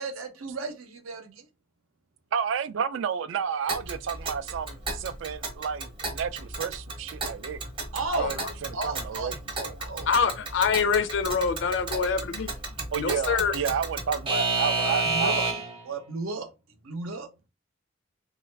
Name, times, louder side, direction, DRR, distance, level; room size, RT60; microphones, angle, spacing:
voice 1, 0.0-1.5 7.9-8.3 8.7-10.1 14.8-15.4 15.8-16.5 16.8-17.3, right 3 dB, 90° right, 0.7 m, -34 dB
voice 2, 2.3-7.6 8.1-8.4 8.6-9.4 12.9-15.6, right 7 dB, 65° right, 0.3 m, -31 dB
Alarm / Clock, 3.7-15.8, right 3 dB, 25° right, 0.6 m, -32 dB
voice 3, 10.1-12.5 13.0-13.5, left 5 dB, 60° left, 0.4 m, -25 dB
3.2 x 2.4 x 3.2 m
head